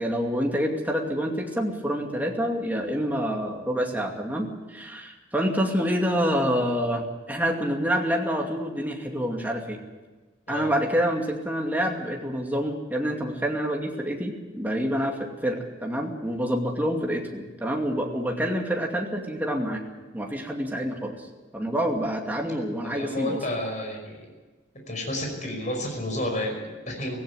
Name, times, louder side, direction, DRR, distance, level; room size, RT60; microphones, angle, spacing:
voice 1, 0.0-9.8 10.5-19.8 20.1-21.3 21.5-23.4, equal, 10° right, 1 dB, 2.5 m, -27 dB
voice 2, 22.8-24.3 24.9-27.2, left 1 dB, 40° left, 2 dB, 5.5 m, -31 dB
17.0 x 16.0 x 9.6 m, 1.2 s
head